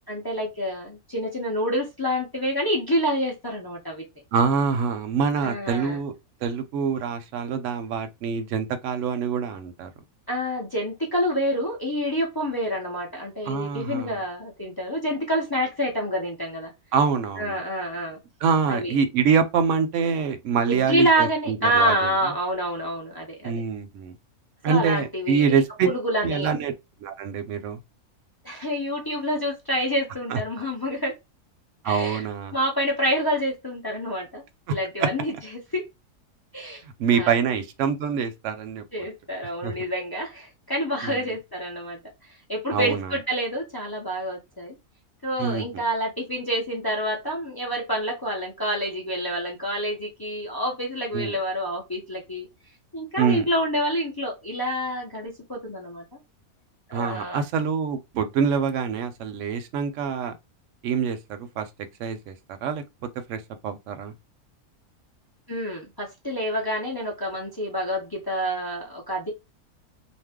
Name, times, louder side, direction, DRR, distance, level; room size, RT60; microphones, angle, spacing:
voice 1, 0.1-4.0 5.4-6.0 10.3-16.7 17.4-18.2 18.7-19.0 20.7-23.6 24.7-26.5 28.4-31.2 31.8-32.2 32.5-34.4 34.7-35.8 36.5-36.8 37.1-37.4 38.9-42.0 42.5-44.8 45.2-52.5 52.9-56.0 56.9-57.4 65.5-69.3, equal, 30° left, 0.4 m, -27 dB
voice 2, 4.3-6.1 6.4-9.9 13.5-14.1 16.9-17.6 18.4-21.9 23.4-24.1 24.6-25.9 26.2-26.7 27.0-27.8 30.3-30.4 31.8-32.6 36.8-38.8 39.6-39.7 41.0-41.2 42.7-43.1 45.4-45.8 51.1-51.3 53.2-53.5 56.9-60.3 60.8-61.7 62.0-62.3 62.6-62.8 63.3-64.1, right 6 dB, 65° right, 0.8 m, -25 dB
2.5 x 2.1 x 3.5 m
omnidirectional pair, 1.6 m